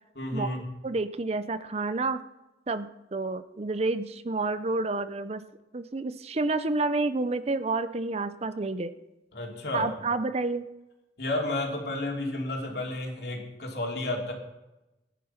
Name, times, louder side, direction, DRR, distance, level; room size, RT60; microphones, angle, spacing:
voice 1, 0.2-0.6 9.3-9.9 11.2-14.3, left 2 dB, 60° left, 1 dB, 3.0 m, -31 dB
voice 2, 0.8-2.2 2.7-5.4 5.7-8.9 9.7-10.6, right 3 dB, 35° right, 12 dB, 0.6 m, -29 dB
17.5 x 10.5 x 5.8 m, 1.0 s
head